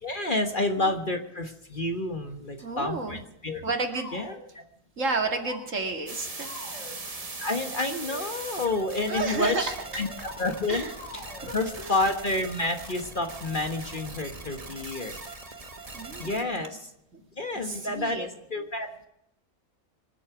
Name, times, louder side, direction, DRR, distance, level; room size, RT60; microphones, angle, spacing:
voice 1, 0.0-3.6 4.1-4.3 7.4-10.1 10.4-11.2 11.5-15.2 16.2-16.8 17.4-18.9, left 2 dB, 35° left, 6 dB, 1.5 m, -29 dB
voice 2, 2.6-3.2 3.6-4.1 5.0-6.5 9.1-9.9 10.7-10.9 11.4-12.0 15.9-16.6 17.1-17.2 17.5-18.3, right 3 dB, 55° right, 5 dB, 2.4 m, -31 dB
sound 1, 3.9-4.4 5.0-5.6 6.4-7.0 8.0-8.4 8.9-9.4 9.9-10.4 10.9-11.7, left 2 dB, 55° left, 5.0 m, -44 dB
sound 2, 6.1-16.4, right 3 dB, 25° right, 1.5 m, -40 dB
25.0 x 8.6 x 6.0 m, 0.80 s
omnidirectional pair, 1.6 m